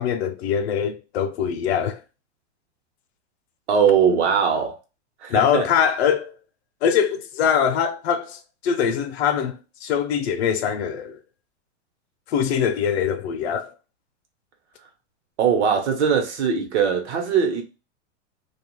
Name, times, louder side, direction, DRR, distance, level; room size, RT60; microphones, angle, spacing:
voice 1, 0.0-2.0 5.3-6.3 6.8-11.2 12.3-13.7, left 8 dB, 60° left, 0.5 m, -23 dB
voice 2, 3.7-4.8 5.2-5.7 15.4-17.6, right 7 dB, 65° right, 1.0 m, -20 dB
2.4 x 2.2 x 3.1 m
supercardioid pair, 160°, 36 cm